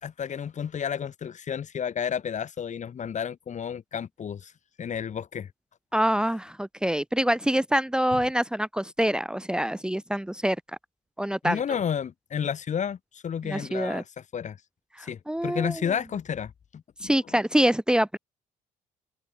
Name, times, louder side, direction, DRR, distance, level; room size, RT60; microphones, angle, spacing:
voice 1, 0.0-4.5 4.8-5.5 8.1-8.2 11.4-14.0 14.3-14.6 15.0-17.1, left 8 dB, 50° left, 3.9 m, -31 dB
voice 2, 5.9-10.6 11.2-11.6 13.4-14.0 15.0-15.8 17.0-18.2, equal, 5° right, 1.4 m, -25 dB
open air
supercardioid pair, 75°, 16 cm